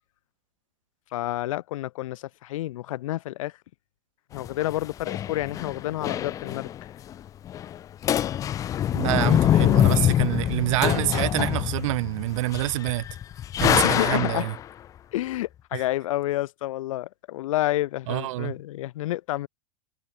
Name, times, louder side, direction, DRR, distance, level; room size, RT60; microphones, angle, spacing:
voice 1, 1.1-3.5 4.3-6.9 13.8-14.5 15.1-19.5, left 15 dB, 65° left, 1.5 m, -29 dB
sound 1, 4.3-6.9 7.1-7.2 7.4-7.8 8.0-14.6, left 11 dB, 20° left, 0.4 m, -24 dB
voice 2, 8.9-13.0 13.6-14.5 15.7-15.8 18.1-18.5, right 18 dB, 60° right, 0.4 m, -26 dB
supercardioid pair, 140°, 18 cm